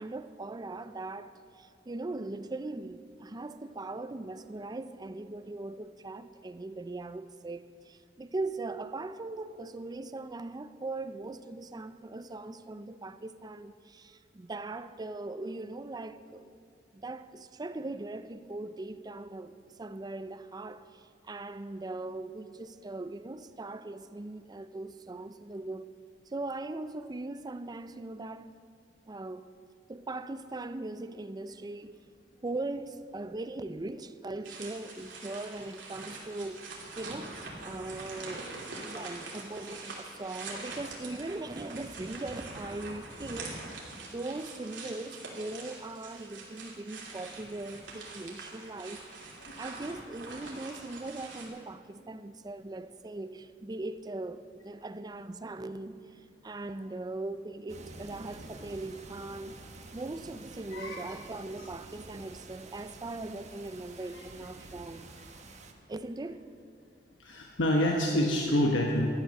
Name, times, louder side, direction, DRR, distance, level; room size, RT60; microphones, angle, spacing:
voice 1, 0.0-16.5 16.9-25.9 26.3-28.5 29.1-29.5 29.9-32.0 32.4-36.7 37.0-49.0 49.6-59.6 59.9-65.1 65.9-66.5, right 2 dB, 20° right, 0.4 m, -40 dB
sound 1, 34.4-51.5, right 3 dB, 80° right, 2.8 m, -44 dB
sound 2, 57.7-65.7, right 2 dB, 40° right, 1.1 m, -49 dB
voice 2, 67.2-69.1, left 1 dB, 80° left, 1.2 m, -28 dB
13.0 x 10.5 x 6.4 m
head